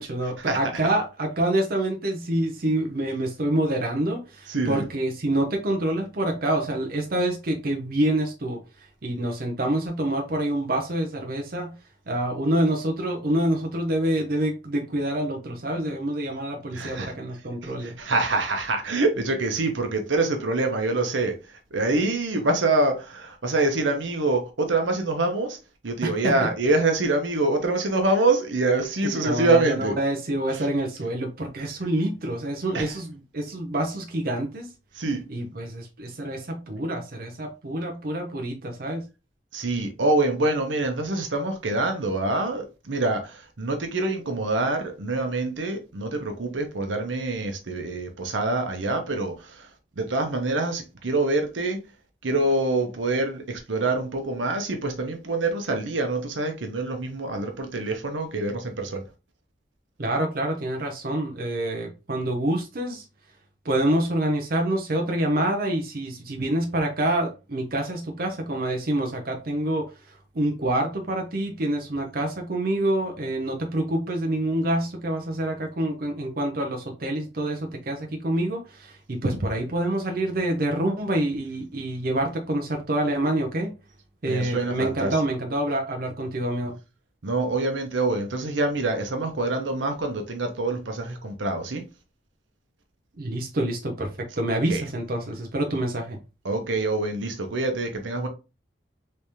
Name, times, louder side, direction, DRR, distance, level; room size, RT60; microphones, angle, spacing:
voice 1, 0.0-8.6 9.0-11.7 12.1-18.0 26.0-26.5 29.0-34.7 35.3-39.0 60.0-63.0 63.6-83.7 84.2-86.8 93.2-96.2, right 1 dB, 50° right, 0.6 m, -27 dB
voice 2, 4.5-4.8 16.7-17.1 17.6-25.6 25.8-30.0 30.5-30.6 32.7-32.9 34.9-35.2 39.5-49.7 50.0-51.8 52.2-59.0 84.3-85.2 87.2-91.8 94.7-94.8 96.4-98.3, right 2 dB, 85° right, 0.8 m, -25 dB
3.3 x 3.3 x 2.8 m
head